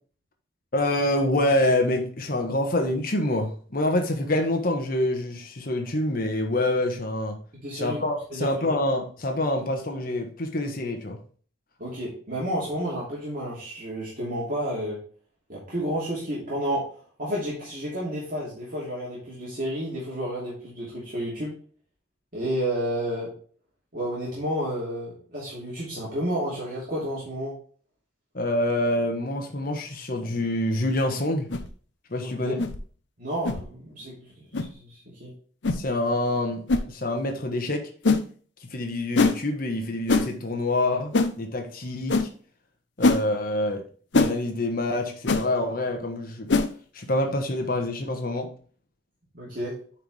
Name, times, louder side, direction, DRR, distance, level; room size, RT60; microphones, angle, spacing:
voice 1, 0.7-7.4 7.7-11.2 28.3-31.5 32.1-32.5 35.7-37.8 38.6-42.3 43.0-43.8 44.1-46.5 46.9-48.5, left 1 dB, 50° left, 3 dB, 1.3 m, -26 dB
voice 2, 7.6-8.0 8.3-8.5 11.8-15.0 15.5-16.8 17.2-21.5 22.3-23.3 23.9-27.5 32.2-32.6 33.2-35.3 49.3-49.7, equal, 50° right, -7 dB, 2.8 m, -31 dB
sound 1, 31.5-31.7 32.6-32.8 33.4-33.6 34.5-34.7 35.6-35.8 36.7-36.9 38.0-38.2 39.2-39.4 40.1-40.3 41.1-41.3 42.1-42.3 43.0-43.2 44.1-44.3 45.3-45.4 46.5-46.7, left 3 dB, 75° left, 0.8 m, -21 dB
9.1 x 4.6 x 3.3 m, 0.44 s
head